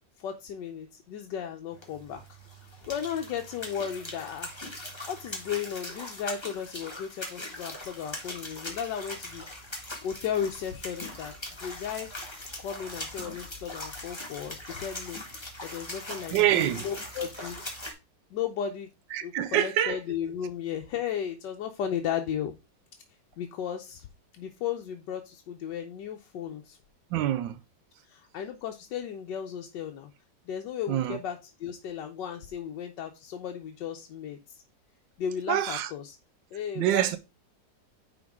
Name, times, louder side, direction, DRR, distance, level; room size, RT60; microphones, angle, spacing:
voice 1, 0.2-2.2 2.9-4.5 5.1-9.4 10.0-11.3 11.6-12.1 12.6-15.2 15.6-17.6 18.3-18.9 19.2-22.5 23.4-24.1 24.3-26.8 28.1-30.1 30.5-34.6 35.2-36.2 36.5-37.2, left 8 dB, 80° left, 1.4 m, -35 dB
sound 1, 1.7-17.9, left 1 dB, 15° left, 1.6 m, -41 dB
voice 2, 16.1-16.8 19.1-20.0 27.1-27.6 30.9-31.2 35.5-35.9 36.7-37.2, right 12 dB, 90° right, 1.3 m, -26 dB
9.7 x 3.9 x 3.6 m
omnidirectional pair, 1.9 m